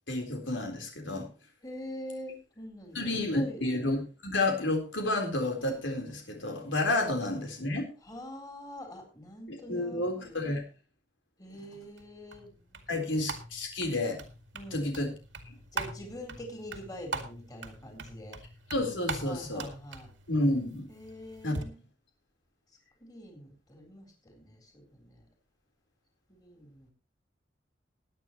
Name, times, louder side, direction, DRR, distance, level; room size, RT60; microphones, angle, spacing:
voice 1, 0.1-1.3 2.9-7.9 9.5-10.6 12.9-14.2 14.7-15.1 15.5-15.6 18.7-19.7 20.3-20.8 21.4-21.6, left 2 dB, 90° left, 3 dB, 3.9 m, -30 dB
voice 2, 1.6-3.6 8.0-10.4 11.4-13.0 14.5-14.9 15.7-18.4 19.2-20.1 20.9-21.7 23.0-25.2 26.3-26.9, left 1 dB, 20° left, 1 dB, 3.6 m, -45 dB
sound 1, 12.0-21.6, right 3 dB, 85° right, 2.2 m, -42 dB
20.0 x 9.2 x 3.0 m, 0.31 s
head